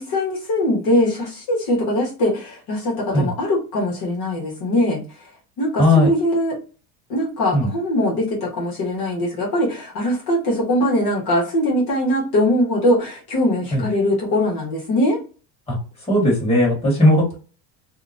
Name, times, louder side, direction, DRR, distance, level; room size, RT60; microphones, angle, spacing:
voice 1, 0.0-5.0 5.6-6.6 7.1-15.2, left 1 dB, 50° left, -2 dB, 1.1 m, -21 dB
voice 2, 5.8-6.1 7.5-7.7 13.7-13.9 15.7-17.4, left 1 dB, 10° left, -5 dB, 1.5 m, -17 dB
2.8 x 2.1 x 2.5 m, 0.35 s
supercardioid pair, 130°, 48 cm